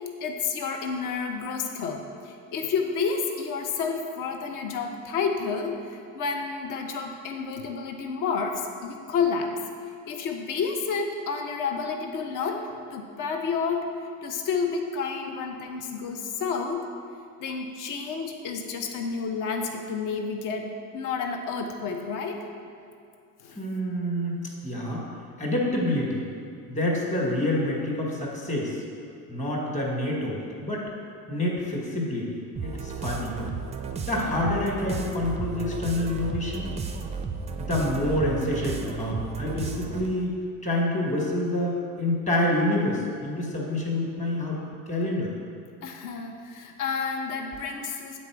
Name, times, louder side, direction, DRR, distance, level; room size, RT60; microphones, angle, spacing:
voice 1, 0.2-9.5 10.1-13.8 14.2-16.8 17.4-20.7 20.9-22.4 23.4-23.6 45.8-48.2, left 5 dB, 55° left, 4 dB, 0.9 m, -30 dB
voice 2, 23.6-24.4 24.6-25.0 25.4-26.3 26.7-28.7 29.3-30.8 31.3-33.4 34.1-36.7 37.6-40.3 40.6-44.6 44.9-45.3, left 1 dB, 20° left, -2 dB, 1.5 m, -27 dB
sound 1, 32.6-40.2, right 5 dB, 20° right, 0.4 m, -34 dB
8.4 x 4.2 x 4.7 m, 2.4 s
supercardioid pair, 110°, 37 cm